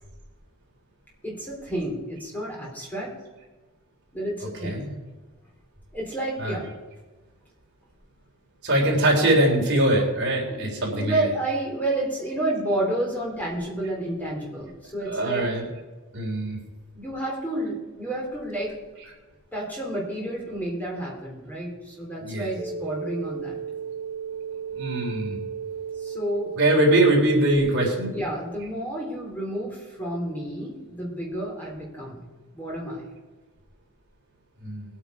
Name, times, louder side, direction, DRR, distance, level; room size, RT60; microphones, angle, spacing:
voice 1, 1.2-3.1 4.1-4.8 5.9-6.7 10.5-15.4 16.9-18.7 19.5-23.6 26.0-26.5 28.0-32.2 32.5-33.0, right 1 dB, 10° left, -3 dB, 3.3 m, -30 dB
voice 2, 4.4-4.9 6.4-6.6 8.6-11.4 15.1-15.6 16.1-16.6 19.0-19.1 22.2-22.5 24.8-25.4 26.6-28.1 34.6-34.8, right 1 dB, 50° right, -2 dB, 3.5 m, -22 dB
sound 1, 22.6-27.6, right 7 dB, 25° left, 2.3 m, -34 dB
19.5 x 8.9 x 4.8 m, 1.2 s
head